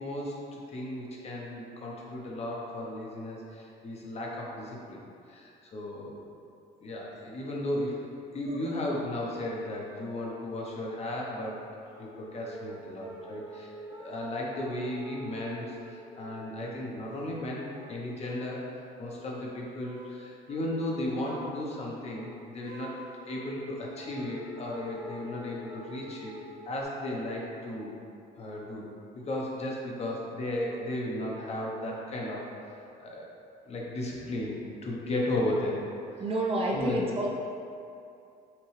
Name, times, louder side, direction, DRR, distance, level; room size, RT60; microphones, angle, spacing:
voice 1, 0.0-6.3 6.8-8.0 8.3-11.6 12.0-22.9 23.3-26.3 26.7-28.0 28.4-28.9 29.1-33.3 33.6-35.8 36.1-36.2 36.7-37.0, left 1 dB, 40° left, -3 dB, 0.8 m, -35 dB
sound 1, 8.5-9.3 9.6-10.0 10.8-10.9 11.9-17.1 17.5-18.8 19.1-19.4 19.7-20.2 20.5-21.6 21.9-26.8, right 1 dB, 55° right, 1.3 m, -47 dB
voice 2, 36.2-37.3, right 1 dB, 35° right, -3 dB, 0.6 m, -29 dB
5.8 x 2.3 x 3.2 m, 2.5 s
cardioid pair, 110°, 17 cm